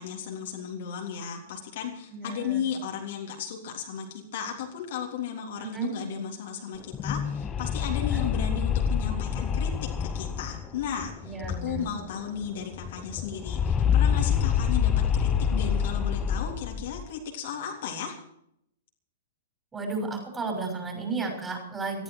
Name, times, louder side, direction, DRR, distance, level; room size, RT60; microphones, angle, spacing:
voice 1, 0.0-11.3 11.6-14.9 15.2-18.1, left 7 dB, 50° left, 0 dB, 3.4 m, -35 dB
voice 2, 2.1-2.6 5.6-5.9 8.0-8.3 11.2-11.9 19.7-22.0, right 4 dB, 15° right, 3 dB, 6.2 m, -33 dB
sound 1, 6.8-12.1 12.4-12.5 12.7-17.1, left 8 dB, 20° left, 1.2 m, -27 dB
19.0 x 14.5 x 4.8 m, 0.75 s
figure-of-eight pair, 105°, 0 cm